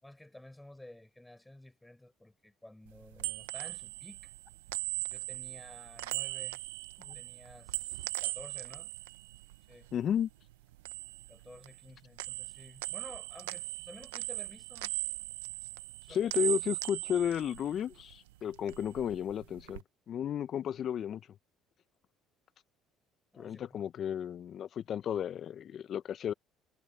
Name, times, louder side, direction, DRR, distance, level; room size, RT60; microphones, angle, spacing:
voice 1, 0.0-4.3 5.1-6.6 7.1-8.9 9.7-9.9 11.3-14.9 16.0-16.3 23.3-23.8, left 1 dB, 10° left, 5.5 m, -53 dB
sound 1, 2.9-10.2 10.5-11.9 12.2-18.2 18.5-19.8, right 19 dB, 85° right, 1.1 m, -39 dB
voice 2, 9.9-10.3 16.1-21.2 23.4-26.3, left 9 dB, 55° left, 1.1 m, -33 dB
hypercardioid pair, 65°, 0 cm